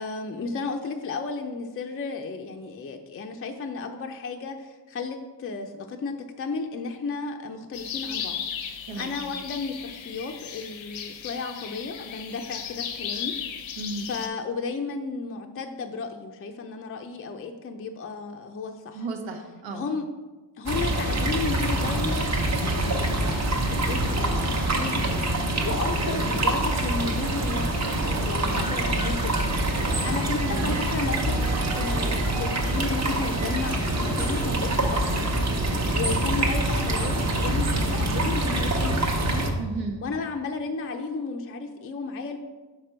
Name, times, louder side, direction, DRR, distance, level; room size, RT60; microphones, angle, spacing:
voice 1, 0.0-8.4 8.6-13.8 14.1-19.0 19.7-20.0 20.6-23.4 23.7-24.4 24.8-29.4 30.0-31.4 31.7-35.2 35.9-39.5 40.0-42.4, left 4 dB, 30° left, 4 dB, 0.4 m, -33 dB
sound 1, 7.7-14.3, left 8 dB, 90° left, 0.8 m, -35 dB
voice 2, 8.9-9.2 13.8-14.1 18.9-19.9 30.5-30.8 39.6-40.0, right 3 dB, 75° right, 2 dB, 1.0 m, -34 dB
sound 2, 20.7-39.5, right 1 dB, 35° right, 0.9 m, -25 dB
Piano, 28.4-35.0, right 2 dB, 10° right, 0.6 m, -40 dB
5.8 x 5.1 x 4.4 m, 1.2 s
wide cardioid pair, 125°, 45 cm